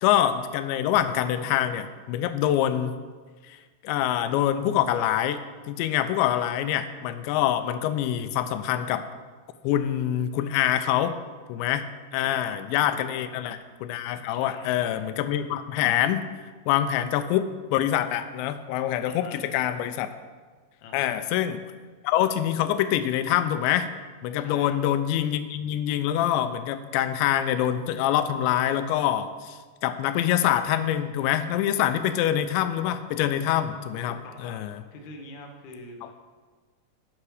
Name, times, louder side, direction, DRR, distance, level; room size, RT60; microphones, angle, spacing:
voice 1, 0.0-2.9 3.5-3.6 3.8-5.4 5.7-9.1 9.6-11.2 11.5-11.8 12.1-16.3 16.7-20.1 20.9-21.6 22.0-23.9 24.2-34.8, left 11 dB, 90° left, 10 dB, 2.9 m, -25 dB
voice 2, 12.9-13.3 14.3-15.0 19.1-19.4 20.8-21.1 24.3-24.8 34.1-34.6 34.9-36.1, left 2 dB, 70° left, 2 dB, 1.8 m, -45 dB
9.6 x 8.6 x 4.9 m, 1.4 s
omnidirectional pair, 5.1 m